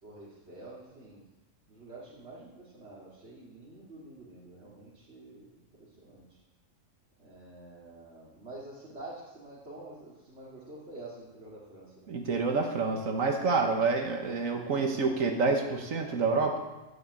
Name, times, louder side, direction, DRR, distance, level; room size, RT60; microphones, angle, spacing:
voice 1, 0.0-1.2 1.6-6.4 7.2-12.1, right 2 dB, 55° right, -8 dB, 2.8 m, -48 dB
voice 2, 12.1-16.6, right 4 dB, 85° right, 3 dB, 1.7 m, -28 dB
11.0 x 8.1 x 8.3 m, 1.1 s
omnidirectional pair, 1.4 m